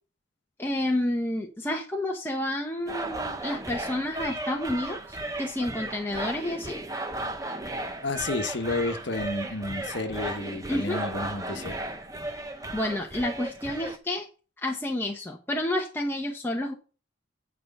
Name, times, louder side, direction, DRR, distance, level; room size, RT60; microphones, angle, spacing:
voice 1, 0.6-6.8 10.7-11.0 12.7-14.3 14.6-16.7, left 1 dB, 10° left, 1.0 m, -30 dB
sound 1, 2.9-14.0, right 2 dB, 20° right, 0.8 m, -35 dB
voice 2, 8.0-11.8, left 2 dB, 65° left, 1.1 m, -31 dB
9.6 x 4.9 x 5.4 m
head